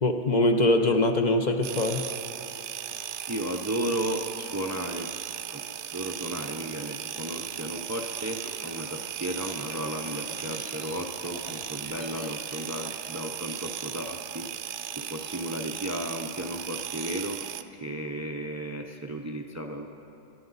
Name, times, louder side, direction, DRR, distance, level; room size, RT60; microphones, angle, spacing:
voice 1, 0.0-2.1, left 2 dB, 45° left, 5 dB, 0.8 m, -23 dB
sound 1, 1.6-17.6, right 10 dB, 80° right, 0.9 m, -37 dB
voice 2, 3.3-5.1 5.5-5.6 5.9-14.5 15.0-17.4 17.7-19.9, right 1 dB, 20° right, 4 dB, 0.4 m, -34 dB
sound 2, 7.5-14.0, left 2 dB, 85° left, 1.8 m, -47 dB
24.5 x 10.0 x 4.0 m, 2.9 s
omnidirectional pair, 1.2 m